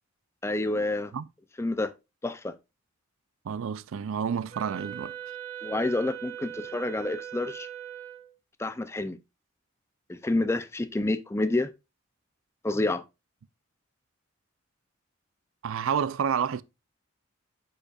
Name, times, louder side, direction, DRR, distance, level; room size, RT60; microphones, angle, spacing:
voice 1, 0.4-1.1 1.6-1.9 2.2-2.5 5.6-7.7 8.6-9.2 10.1-11.7 12.6-13.0, left 2 dB, 10° left, 0.4 m, -28 dB
voice 2, 3.5-5.1 15.6-16.6, right 7 dB, 70° right, 0.4 m, -29 dB
Wind instrument woodwind instrument, 4.5-8.3, right 10 dB, 30° right, 1.6 m, -40 dB
8.4 x 5.3 x 2.4 m
head